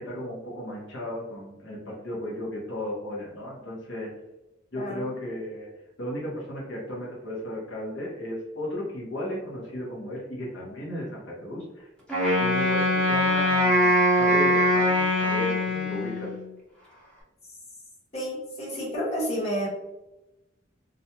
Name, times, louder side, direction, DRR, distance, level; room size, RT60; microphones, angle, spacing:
voice 1, 0.0-4.1 4.7-5.7 6.0-11.9 12.3-16.3, left 1 dB, 70° left, -5 dB, 0.8 m, -35 dB
voice 2, 4.7-5.1 18.1-19.7, equal, 35° left, -6 dB, 1.0 m, -30 dB
Wind instrument woodwind instrument, 12.1-16.5, left 1 dB, 5° left, 0.7 m, -22 dB
2.5 x 2.2 x 2.8 m, 0.98 s
head